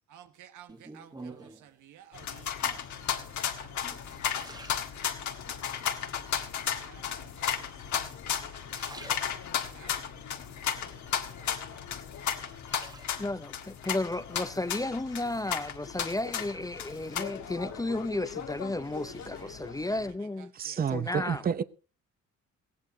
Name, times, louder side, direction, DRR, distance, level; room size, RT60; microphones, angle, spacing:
voice 1, 0.1-4.6 5.0-5.1 5.5-5.8 6.7-12.6 18.8-20.0 20.4-21.5, right 10 dB, 85° right, 1.4 m, -56 dB
sound 1, 0.7-1.8 2.5-3.0 3.6-5.5 6.0-6.6 7.4-8.1 8.4-9.8 10.2-11.5 11.9-13.5 14.9-15.5 15.9-18.5 18.8-19.3, right 2 dB, 15° right, 1.3 m, -50 dB
sound 2, 2.1-20.1, left 8 dB, 70° left, 1.8 m, -35 dB
voice 2, 13.2-20.5 20.9-21.4, left 2 dB, 10° left, 0.6 m, -33 dB
voice 3, 20.5-21.6, right 7 dB, 30° right, 0.7 m, -29 dB
19.5 x 15.5 x 2.7 m
cardioid pair, 90°, 30 cm